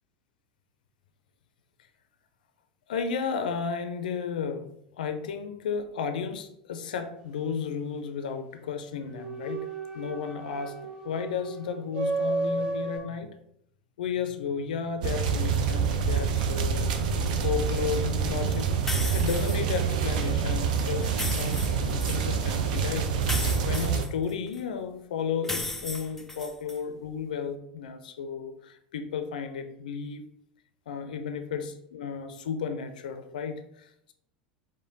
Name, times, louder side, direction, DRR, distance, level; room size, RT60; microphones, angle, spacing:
voice 1, 2.9-9.7 9.9-10.8 11.0-13.3 14.0-23.1 23.6-30.3 30.9-34.1, left 6 dB, 70° left, 9 dB, 0.4 m, -33 dB
sound 1, 9.1-13.0, right 3 dB, 45° right, 1.2 m, -32 dB
sound 2, 15.0-24.1, right 6 dB, 65° right, 0.5 m, -27 dB
sound 3, 18.9-19.8 21.0-22.2 23.2-24.6 25.4-26.8, left 2 dB, 5° left, 0.4 m, -35 dB
4.9 x 2.1 x 3.8 m, 0.74 s
figure-of-eight pair, 80°, 5 cm